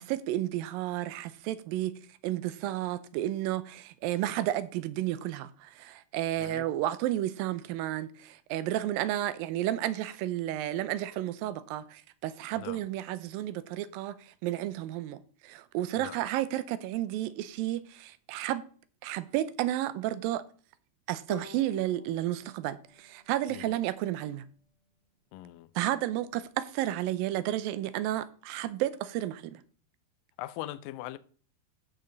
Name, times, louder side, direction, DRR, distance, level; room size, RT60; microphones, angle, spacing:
voice 1, 0.0-1.9 2.2-18.6 19.0-20.4 21.1-24.5 25.8-29.6, right 13 dB, 80° right, 2.3 m, -32 dB
Bowed string instrument, 21.3-24.6, left 5 dB, 25° left, 3.4 m, -51 dB
voice 2, 25.3-25.7 30.4-31.2, left 15 dB, 80° left, 2.1 m, -41 dB
15.0 x 5.3 x 3.9 m
omnidirectional pair, 4.2 m